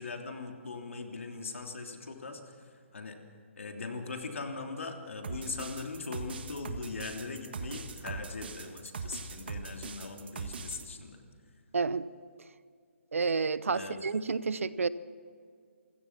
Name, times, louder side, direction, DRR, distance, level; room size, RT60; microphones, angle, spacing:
voice 1, 0.0-3.2 3.6-11.2 13.7-14.0, left 4 dB, 75° left, 3 dB, 3.2 m, -40 dB
sound 1, 5.2-10.8, right 4 dB, 50° right, 1.6 m, -40 dB
voice 2, 11.7-12.1 13.1-14.9, right 4 dB, 80° right, 16 dB, 0.9 m, -30 dB
27.5 x 16.5 x 6.0 m, 2.1 s
hypercardioid pair, 170°, 7 cm